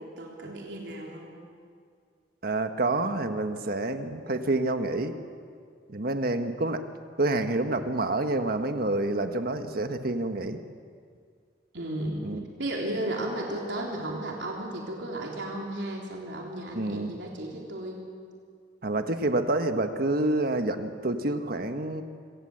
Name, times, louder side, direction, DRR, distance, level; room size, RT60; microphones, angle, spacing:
voice 1, 0.0-1.3 11.7-12.3 12.6-18.1, right 1 dB, 85° right, -1 dB, 3.6 m, -34 dB
voice 2, 2.4-5.1 5.9-6.8 7.2-10.6 12.2-12.4 16.7-17.1 18.8-22.0, right 2 dB, 55° right, 7 dB, 1.4 m, -28 dB
25.0 x 17.5 x 7.9 m, 2.1 s
head